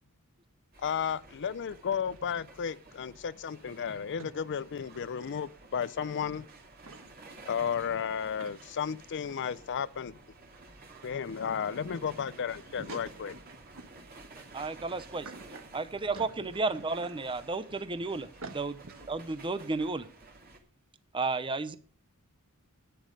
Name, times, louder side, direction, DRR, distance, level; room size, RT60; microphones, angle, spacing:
sound 1, 0.7-20.6, right 3 dB, 45° right, 2.6 m, -52 dB
voice 1, 0.8-6.4 7.5-10.2 11.0-13.3, left 7 dB, 55° left, 0.5 m, -33 dB
voice 2, 3.9-4.4 6.8-7.3 7.8-7.9 8.4-8.8 10.9-11.1 12.7-13.2 13.5-14.1 14.4-14.5 15.2-15.6 16.1-16.4 16.7-17.2 18.4-19.1, right 3 dB, 65° right, 1.4 m, -48 dB
voice 3, 14.5-15.3 15.7-18.3 18.6-18.7 19.1-20.1 21.1-21.8, right 3 dB, 25° right, 0.7 m, -32 dB
11.0 x 9.4 x 5.2 m
head